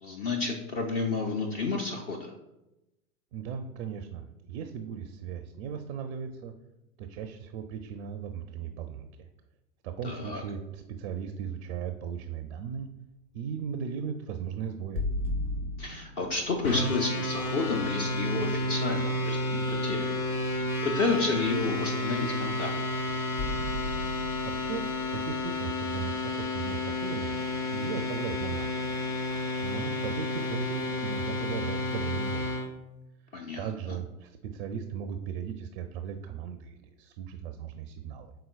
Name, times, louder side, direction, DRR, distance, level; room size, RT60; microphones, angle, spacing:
voice 1, 0.0-2.3 10.0-10.4 15.8-20.1 20.5-22.7 33.3-33.7, left 3 dB, 30° left, 2 dB, 0.4 m, -31 dB
voice 2, 3.3-6.5 7.0-9.3 9.8-12.9 13.3-15.0 24.5-27.4 27.7-28.9 29.6-32.7 33.6-38.3, right 7 dB, 45° right, 8 dB, 0.4 m, -37 dB
sound 1, 14.9-18.7 22.3-22.5 23.4-27.2, left 1 dB, 55° left, 1.3 m, -37 dB
sound 2, 16.6-32.7, left 1 dB, 85° left, 0.9 m, -31 dB
5.7 x 3.8 x 2.4 m, 0.94 s
hypercardioid pair, 100°, 43 cm